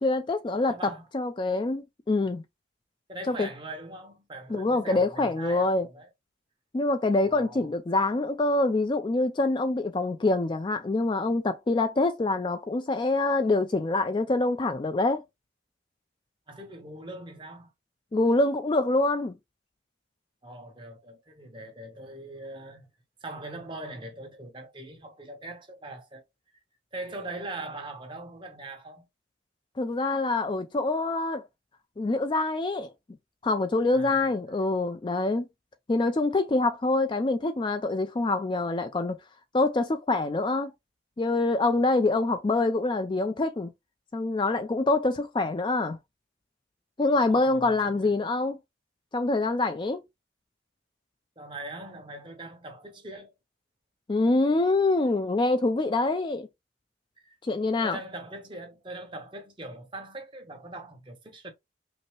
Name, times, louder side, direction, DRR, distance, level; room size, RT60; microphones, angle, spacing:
voice 1, 0.0-2.4 3.3-3.5 4.5-5.9 6.7-15.2 18.1-19.3 29.8-31.4 32.0-32.9 33.4-35.4 35.9-39.2 39.5-40.7 41.2-43.7 44.1-46.0 47.0-48.6 49.1-50.0 54.1-56.5 57.4-58.0, left 2 dB, 25° left, 0.3 m, -25 dB
voice 2, 0.7-1.1 3.1-6.1 7.2-7.7 16.5-17.7 20.4-22.9 23.2-26.2 26.9-29.1 33.9-34.6 47.1-48.1 51.4-53.3 57.2-57.4 57.8-61.5, right 2 dB, 25° right, 1.1 m, -41 dB
5.3 x 2.0 x 3.0 m
head